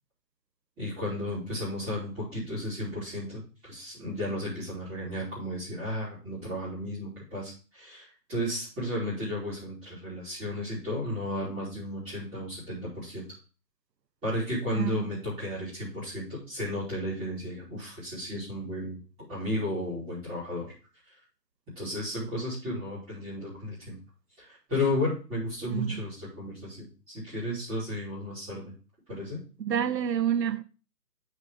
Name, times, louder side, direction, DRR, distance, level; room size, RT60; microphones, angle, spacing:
voice 1, 0.8-13.3 14.2-19.0 19.3-20.7 21.7-24.0 24.4-28.6 29.1-29.4, left 1 dB, 10° right, 5.0 m, -33 dB
voice 2, 14.7-15.2 25.7-26.0 29.7-30.6, right 9 dB, 80° right, 0.9 m, -28 dB
8.3 x 7.2 x 3.7 m
hypercardioid pair, 165°, 49 cm